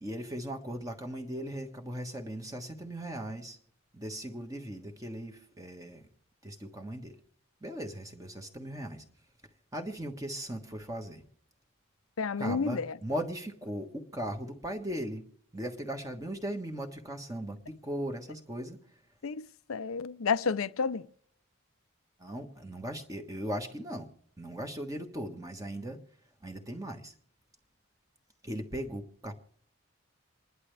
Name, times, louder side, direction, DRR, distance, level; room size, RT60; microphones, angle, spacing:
voice 1, 0.0-3.6 3.9-6.1 6.4-7.2 7.6-9.0 9.7-11.2 12.4-15.3 15.5-18.8 22.2-24.1 24.4-26.0 26.4-27.1 28.4-29.3, right 1 dB, 15° right, 1.3 m, -38 dB
voice 2, 12.2-12.9 19.2-21.0, left 5 dB, 75° left, 0.6 m, -31 dB
27.5 x 11.0 x 3.3 m
head